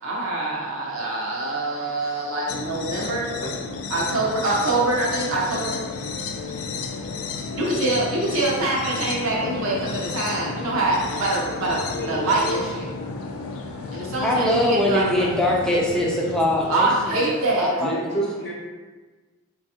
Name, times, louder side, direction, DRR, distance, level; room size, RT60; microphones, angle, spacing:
voice 1, 0.0-3.3 3.9-12.9 13.1-15.3 16.7-17.8, right 2 dB, 75° right, -4 dB, 0.6 m, -25 dB
sound 1, 2.5-17.5, left 4 dB, 90° left, 0.3 m, -33 dB
voice 2, 11.8-12.7 17.8-18.5, right 1 dB, 45° left, -7 dB, 0.6 m, -29 dB
voice 3, 13.9-17.3 17.6-18.2, left 1 dB, 5° left, -4 dB, 0.4 m, -23 dB
3.3 x 2.2 x 2.7 m, 1.3 s
head